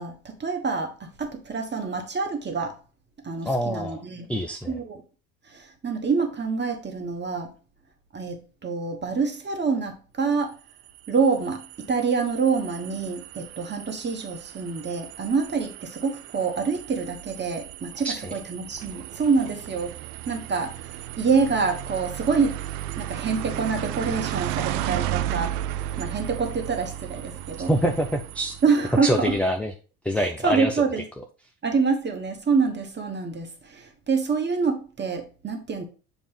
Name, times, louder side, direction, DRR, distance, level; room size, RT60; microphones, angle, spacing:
voice 1, 0.0-2.7 3.2-4.3 4.7-5.0 5.5-7.5 8.1-10.5 11.1-19.9 20.3-22.6 23.0-25.5 26.0-27.7 28.6-29.3 30.2-31.0 31.6-35.8, right 5 dB, 25° right, 4 dB, 1.4 m, -26 dB
voice 2, 3.5-4.0 4.3-4.8 18.0-18.3 27.6-28.5 29.0-29.7 30.0-30.8, equal, 5° left, 4 dB, 0.5 m, -25 dB
sound 1, 10.7-29.2, right 13 dB, 55° right, 0.6 m, -35 dB
7.1 x 2.6 x 5.1 m, 0.35 s
figure-of-eight pair, 65°, 46 cm